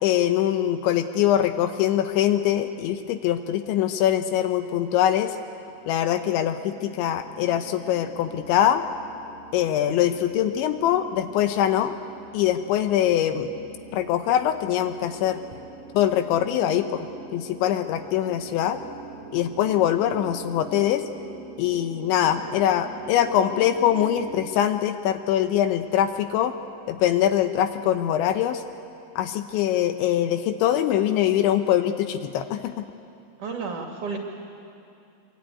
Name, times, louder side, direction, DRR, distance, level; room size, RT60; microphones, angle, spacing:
voice 1, 0.0-5.4 5.9-8.8 9.5-12.0 12.3-13.5 13.9-15.4 15.9-17.1 17.3-18.8 19.3-21.0 21.6-26.5 26.9-28.6 29.2-32.8, left 11 dB, 75° left, 8 dB, 3.0 m, -23 dB
sound 1, 5.6-24.5, right 4 dB, 70° right, 1.5 m, -44 dB
voice 2, 33.4-34.2, right 4 dB, 50° right, 2 dB, 2.7 m, -31 dB
25.5 x 23.5 x 9.5 m, 2.6 s
omnidirectional pair, 5.7 m